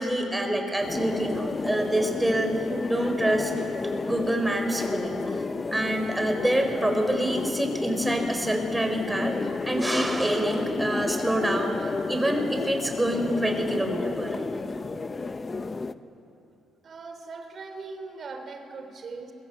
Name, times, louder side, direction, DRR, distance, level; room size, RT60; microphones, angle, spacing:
voice 1, 0.0-2.5 2.9-3.5 4.1-5.2 5.7-9.3 9.6-11.7 12.1-14.6, right 1 dB, 10° right, 4 dB, 4.3 m, -26 dB
sound 1, 0.8-15.9, left 3 dB, 30° left, 0.8 m, -31 dB
voice 2, 16.8-19.3, right 4 dB, 50° right, 7 dB, 3.2 m, -40 dB
27.0 x 22.0 x 7.8 m, 2.9 s
cardioid pair, 90°, 0 cm